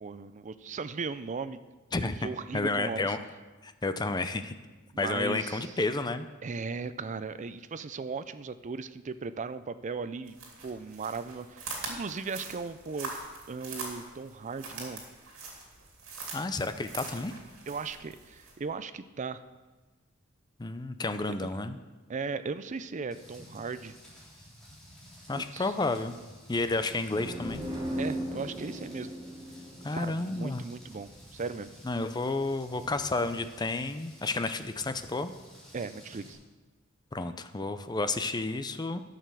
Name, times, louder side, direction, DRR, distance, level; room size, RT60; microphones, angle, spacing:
voice 1, 0.0-1.6 2.0-3.2 4.9-5.7 6.4-10.4 10.6-13.1 13.5-15.0 17.7-19.4 21.4-21.5 22.1-24.0 25.3-25.7 28.0-29.1 29.9-31.7 35.7-36.4, right 4 dB, 35° right, 13 dB, 0.4 m, -37 dB
voice 2, 1.9-3.2 3.6-4.5 5.0-6.3 16.3-17.3 20.6-21.8 25.3-26.1 26.5-27.6 29.8-30.6 31.8-35.3 37.1-39.0, left 3 dB, 20° left, 10 dB, 0.5 m, -31 dB
sound 1, 10.3-18.5, right 3 dB, 85° right, 2.6 m, -43 dB
Rain, 23.1-36.3, equal, 5° left, 3.4 m, -53 dB
sound 2, 27.1-30.8, equal, 20° right, 1.6 m, -37 dB
11.0 x 6.7 x 6.1 m, 1.3 s
head